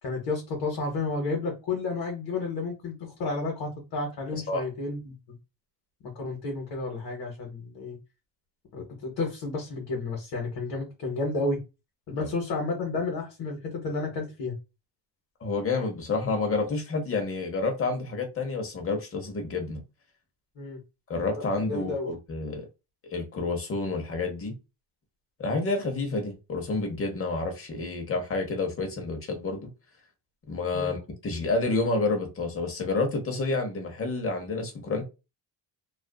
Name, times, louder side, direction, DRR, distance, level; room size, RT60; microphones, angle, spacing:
voice 1, 0.0-5.4 6.1-8.0 8.7-11.6 12.1-14.5 20.6-20.8 21.7-22.1 30.7-30.9, left 3 dB, 55° left, 1.0 m, -31 dB
voice 2, 4.3-4.6 12.2-12.3 15.4-19.8 21.1-22.7 23.1-24.5 25.4-29.7 30.5-35.0, left 3 dB, 30° left, 0.8 m, -29 dB
2.4 x 2.4 x 2.2 m
cardioid pair, 120°, 45 cm